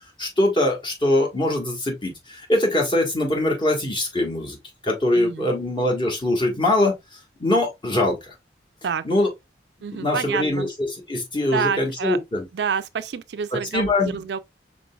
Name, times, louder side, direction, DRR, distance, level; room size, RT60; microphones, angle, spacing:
voice 1, 0.2-4.6 4.8-6.9 7.4-8.3 9.0-9.3 9.9-12.4 13.5-14.2, left 1 dB, 25° left, 1.4 m, -22 dB
voice 2, 5.1-5.5 8.8-9.0 9.8-10.7 11.5-12.2 12.5-14.4, right 6 dB, 70° right, 0.4 m, -28 dB
5.1 x 3.8 x 2.3 m
head